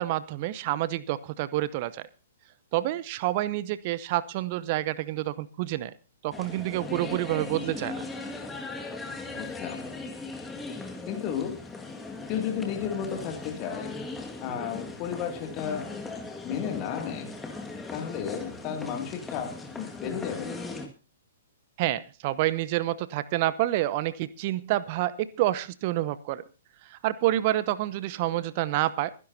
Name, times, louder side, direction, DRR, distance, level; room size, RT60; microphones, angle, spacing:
voice 1, 0.0-2.1 2.7-5.9 6.2-8.0 21.8-26.4 26.9-29.1, right 15 dB, 40° right, 16 dB, 0.8 m, -28 dB
sound 1, 6.3-20.9, left 3 dB, 10° left, 1.9 m, -38 dB
voice 2, 9.3-9.8 11.1-11.6 12.3-14.0 14.4-16.0 16.4-17.3 17.9-20.6, left 8 dB, 35° left, 3 dB, 2.5 m, -33 dB
23.5 x 11.0 x 2.8 m, 0.33 s
figure-of-eight pair, 115°, 0 cm